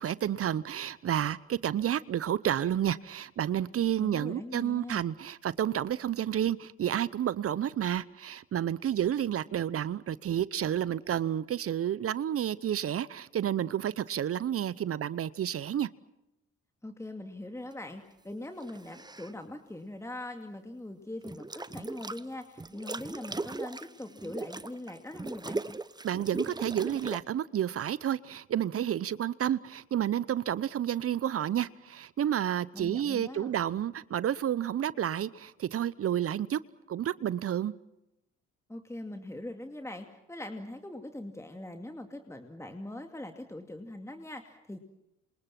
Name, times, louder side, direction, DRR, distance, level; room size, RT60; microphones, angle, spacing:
voice 1, 0.0-15.9 26.0-36.6 36.9-37.7, right 10 dB, 50° right, 0.8 m, -30 dB
voice 2, 4.0-5.0 16.8-25.6 32.7-33.5 38.7-44.8, left 1 dB, 10° left, 2.5 m, -42 dB
sound 1, 18.6-19.3 21.2-22.2 22.6-27.2, right 3 dB, 15° right, 0.9 m, -38 dB
27.5 x 27.0 x 6.0 m
hypercardioid pair, 55°, 30 cm